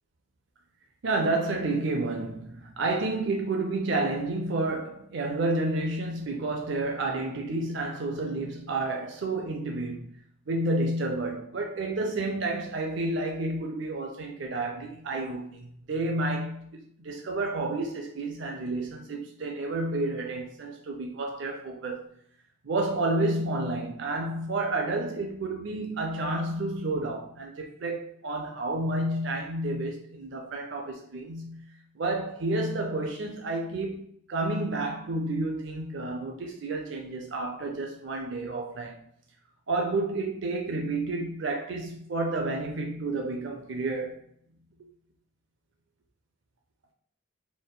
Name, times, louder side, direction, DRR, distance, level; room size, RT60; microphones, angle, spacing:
voice 1, 1.0-10.1 10.5-22.1 22.6-31.7 31.9-39.0 39.7-44.2, right 2 dB, 70° right, 0.5 m, -30 dB
4.2 x 3.4 x 2.2 m
head